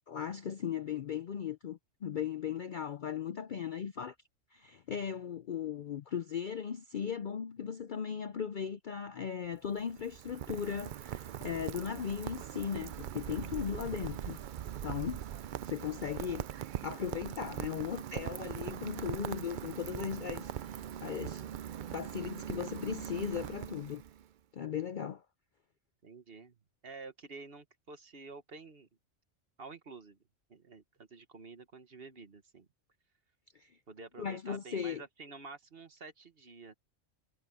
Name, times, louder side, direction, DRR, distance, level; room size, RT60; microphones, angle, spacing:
voice 1, 0.1-4.1 4.5-14.4 14.8-15.2 15.6-16.5 16.8-21.5 21.9-24.0 24.5-25.2 33.5-33.8 34.2-35.0, left 8 dB, 55° left, 0.6 m, -37 dB
Rain, 9.4-24.3, right 10 dB, 65° right, 0.4 m, -41 dB
voice 2, 26.0-26.6 26.8-28.9 29.6-30.2 30.5-32.7 33.9-36.7, right 4 dB, 50° right, 1.6 m, -49 dB
omnidirectional pair, 1.3 m